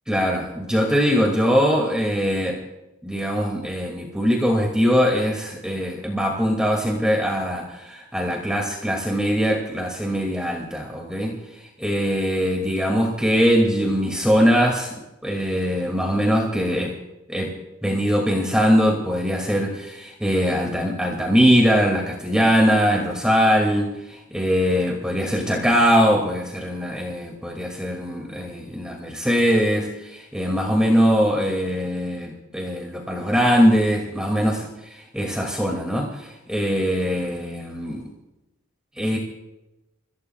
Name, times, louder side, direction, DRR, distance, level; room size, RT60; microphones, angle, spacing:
voice 1, 0.1-2.6 3.0-14.9 15.2-17.0 17.3-17.5 17.8-38.1 39.0-39.2, equal, 5° right, 0 dB, 2.3 m, -21 dB
30.0 x 17.0 x 2.4 m, 0.98 s
head